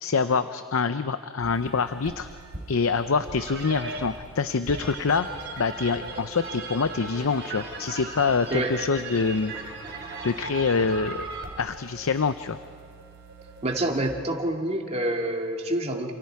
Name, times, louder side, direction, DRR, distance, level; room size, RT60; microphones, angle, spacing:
voice 1, 0.0-2.3 2.7-5.3 5.6-9.5 10.2-11.2 11.6-12.6, left 5 dB, 65° left, 11 dB, 0.6 m, -25 dB
sound 1, 1.4-14.1, right 3 dB, 50° right, 5.0 m, -39 dB
voice 2, 13.6-16.1, right 1 dB, 30° right, 1 dB, 2.6 m, -27 dB
29.0 x 27.5 x 4.8 m, 2.1 s
head